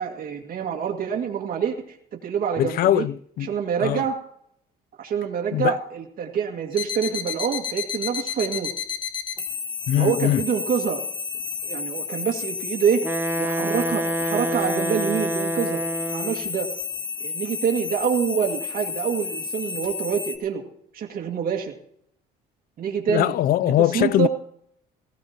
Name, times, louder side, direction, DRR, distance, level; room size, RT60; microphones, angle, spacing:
voice 1, 0.0-2.0 2.2-3.1 3.4-4.2 5.0-8.7 10.0-11.0 11.6-13.1 13.4-15.8 16.1-16.7 17.2-20.6 20.9-21.7 22.8-23.3 23.6-24.3, right 7 dB, 55° right, 2.1 m, -26 dB
voice 2, 2.6-3.5 3.8-4.0 5.5-5.8 9.9-10.4 23.1-24.3, left 12 dB, 60° left, 0.4 m, -21 dB
sound 1, 6.7-20.4, left 6 dB, 25° left, 1.6 m, -31 dB
Wind instrument woodwind instrument, 13.0-16.5, right 2 dB, 10° right, 0.5 m, -27 dB
19.5 x 15.5 x 2.9 m
cardioid pair, 110°, 17 cm